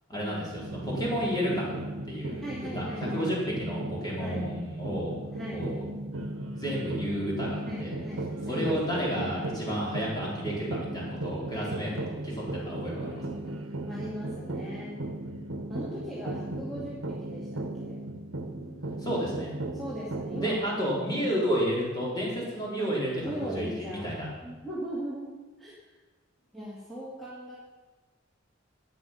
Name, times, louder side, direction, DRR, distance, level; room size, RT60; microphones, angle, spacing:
voice 1, 0.1-1.7 2.1-2.4 2.7-5.2 5.5-5.9 6.5-8.0 8.4-13.3 19.0-19.5 20.4-24.3, equal, 20° left, -5 dB, 3.8 m, -31 dB
sound 1, 0.5-20.5, right 1 dB, 90° right, 1.2 m, -36 dB
voice 2, 2.4-3.4 4.2-4.4 5.3-5.7 7.7-9.3 11.5-12.0 13.4-13.6 13.9-15.0 15.7-18.0 19.8-20.7 21.1-21.5 22.8-22.9 23.2-24.1 24.4-25.3 25.6-25.8 26.5-27.6, equal, ahead, -8 dB, 2.3 m, -39 dB
12.0 x 9.5 x 5.8 m, 1.2 s
head